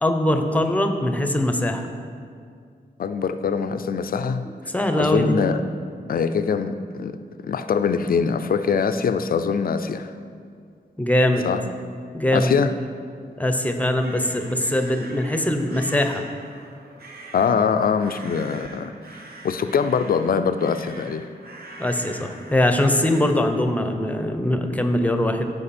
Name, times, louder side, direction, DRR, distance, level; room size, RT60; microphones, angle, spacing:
voice 1, 0.0-1.9 4.7-5.3 7.9-8.0 11.0-11.5 12.1-12.6 13.4-16.2 21.8-25.6, left 1 dB, 10° left, 6 dB, 0.7 m, -22 dB
voice 2, 3.0-4.5 5.0-5.6 6.1-7.2 7.4-10.1 11.5-11.6 12.3-12.7 17.3-18.9 19.4-21.3, left 6 dB, 60° left, 10 dB, 0.4 m, -23 dB
sound 1, 13.6-23.3, right 2 dB, 70° right, 1.1 m, -43 dB
15.0 x 5.1 x 4.3 m, 2.2 s
wide cardioid pair, 120°, 17 cm